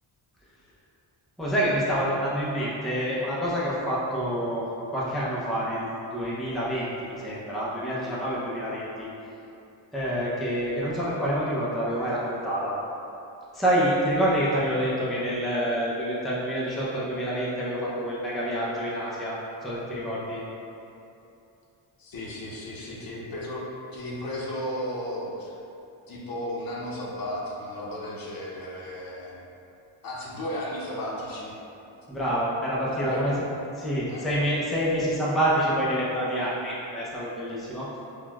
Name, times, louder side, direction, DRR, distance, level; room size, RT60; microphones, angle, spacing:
voice 1, 1.4-4.6 4.9-9.1 9.9-12.8 13.5-20.4 32.1-33.4 33.8-37.9, equal, ahead, -7 dB, 0.5 m, -27 dB
voice 2, 22.0-25.5 26.1-29.4 30.0-31.6 32.8-33.4 34.1-34.3, left 1 dB, 50° left, -4 dB, 0.7 m, -34 dB
4.3 x 2.3 x 2.2 m, 2.8 s
cardioid pair, 90°, 46 cm